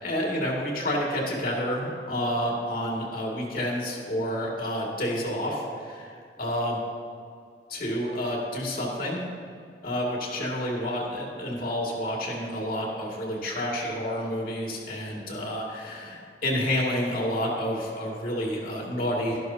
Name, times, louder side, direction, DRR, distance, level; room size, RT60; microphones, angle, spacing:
voice 1, 0.0-6.1 6.4-6.8 7.7-9.2 9.8-19.4, equal, 55° left, -2 dB, 2.2 m, -29 dB
12.5 x 11.5 x 2.8 m, 2.3 s
head